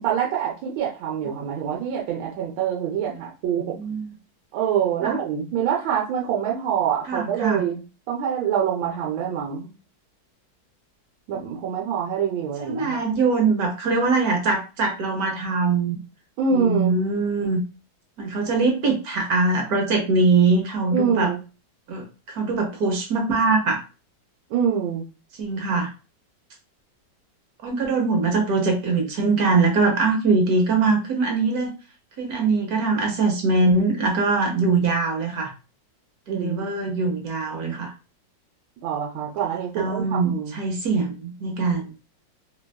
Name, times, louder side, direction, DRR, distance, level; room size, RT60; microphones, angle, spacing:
voice 1, 0.0-3.8 4.5-9.7 11.3-13.0 16.4-17.0 20.9-21.4 24.5-25.0 36.3-36.9 38.8-40.6, right 8 dB, 85° right, -2 dB, 1.3 m, -25 dB
voice 2, 3.8-4.1 5.0-5.2 7.1-7.6 12.6-16.0 16.5-17.6 18.2-21.3 21.9-23.8 25.4-25.9 27.6-31.8 32.2-35.5 36.3-37.9 39.8-41.9, right 3 dB, 70° right, 3 dB, 0.9 m, -22 dB
3.3 x 2.2 x 2.2 m, 0.32 s
omnidirectional pair, 2.0 m